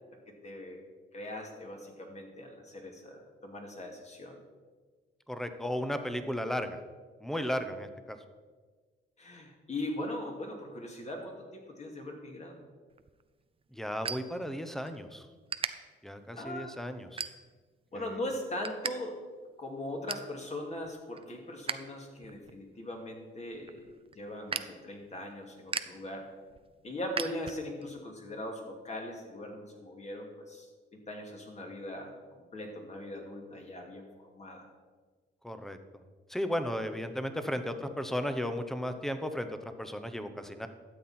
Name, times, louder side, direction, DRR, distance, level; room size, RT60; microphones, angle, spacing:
voice 1, 0.3-0.8 1.1-4.4 9.2-12.6 16.4-16.7 17.9-19.2 19.6-23.9 24.1-26.3 26.8-32.1 32.5-34.0 34.3-34.7, left 1 dB, 35° left, 2 dB, 2.4 m, -40 dB
voice 2, 5.3-6.8 7.2-8.2 13.7-15.3 16.0-17.3 35.4-35.8 36.3-40.7, equal, ahead, 9 dB, 0.9 m, -35 dB
sound 1, 12.9-15.0 15.3-15.7 16.3-16.5 17.0-17.7 18.1-18.9 19.2-19.3 19.7-20.3 20.8-21.8 22.1-27.9, right 5 dB, 30° right, 0.5 m, -39 dB
12.5 x 7.7 x 4.3 m, 1.4 s
cardioid pair, 90°, 20 cm